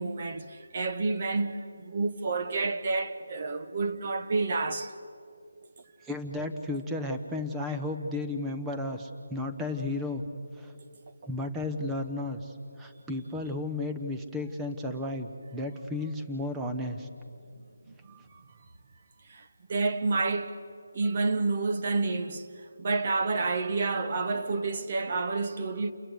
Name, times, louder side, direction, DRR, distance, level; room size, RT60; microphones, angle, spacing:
voice 1, 0.0-4.9 17.9-18.4 19.3-20.6 20.9-22.5 22.8-25.9, right 3 dB, 30° right, 1.2 m, -29 dB
voice 2, 6.0-10.2 10.6-10.7 11.3-17.1, left 2 dB, 5° right, 1.0 m, -33 dB
29.5 x 22.0 x 8.3 m
figure-of-eight pair, 175°, 0 cm